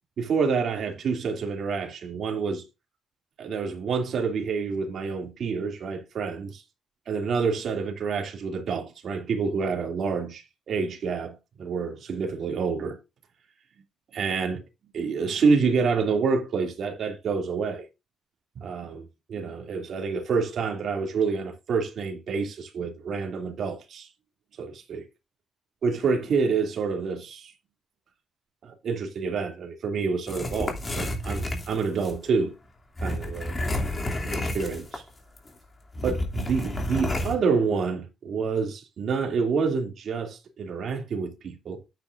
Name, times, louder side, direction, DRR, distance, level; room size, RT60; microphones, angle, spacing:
voice 1, 0.2-2.6 3.4-6.6 7.1-13.0 14.1-14.6 14.9-17.9 18.6-24.1 24.6-25.1 25.8-27.5 28.6-32.6 33.0-33.5 34.2-35.0 36.0-41.8, right 5 dB, 60° right, 2.7 m, -28 dB
sound 1, 30.3-32.2 33.0-35.1 35.4-35.5 35.9-37.4, left 1 dB, 25° left, 2.8 m, -30 dB
10.5 x 8.7 x 2.6 m
cardioid pair, 90°, 0 cm